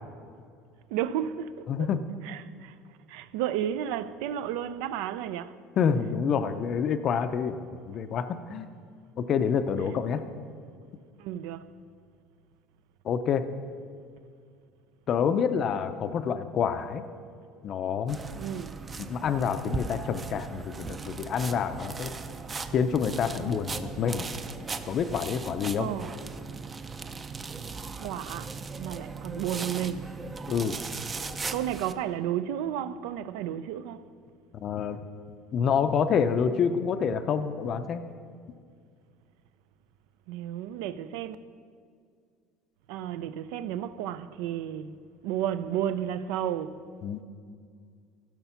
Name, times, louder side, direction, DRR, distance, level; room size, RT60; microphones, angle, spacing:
voice 1, 0.9-1.9 2.2-2.8 3.1-5.6 11.2-11.7 18.4-19.0 25.8-26.5 28.0-30.3 31.5-34.0 40.3-41.4 42.9-45.0 45.2-46.9, right 10 dB, 80° right, 0.4 m, -33 dB
voice 2, 1.7-2.0 5.8-7.6 7.9-8.7 9.2-10.2 13.0-13.4 15.1-17.0 17.6-18.2 19.1-22.1 22.7-24.3 24.9-25.9 30.5-30.8 34.5-35.0 35.5-38.0 47.0-47.2, left 7 dB, 40° left, 0.5 m, -27 dB
sound 1, 18.1-31.9, right 4 dB, 20° right, 0.4 m, -38 dB
15.5 x 5.8 x 5.7 m
cardioid pair, 155°, 0 cm